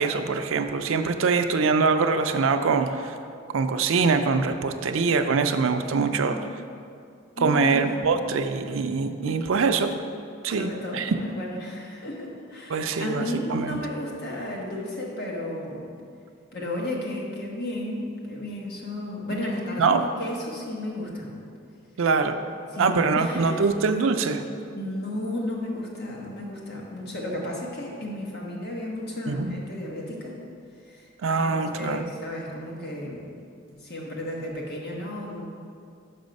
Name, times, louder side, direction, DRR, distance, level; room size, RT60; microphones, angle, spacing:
voice 1, 0.0-3.2 3.5-6.4 7.4-9.9 10.4-11.2 12.7-13.8 19.8-20.0 22.0-22.4 22.8-24.4 29.3-29.6 31.2-32.1, right 4 dB, 80° right, 7 dB, 0.4 m, -23 dB
voice 2, 7.4-7.9 9.3-9.4 10.5-15.9 16.5-21.3 22.7-23.7 24.7-30.3 30.9-33.2 33.8-35.5, left 1 dB, 50° left, -2 dB, 1.3 m, -33 dB
6.1 x 5.5 x 5.2 m, 2.3 s
head